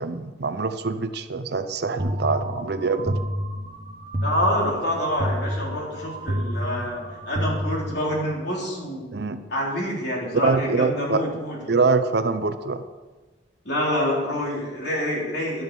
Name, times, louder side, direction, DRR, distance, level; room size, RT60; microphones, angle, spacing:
voice 1, 0.0-3.2 9.1-9.4 10.4-11.2 11.7-12.8, right 4 dB, 60° right, 10 dB, 0.6 m, -24 dB
sound 1, 2.0-8.4, equal, 35° right, 1.0 m, -30 dB
voice 2, 4.2-9.1 9.5-11.6 13.7-15.6, equal, 60° left, -3 dB, 3.5 m, -27 dB
11.5 x 7.9 x 5.3 m, 1.2 s
head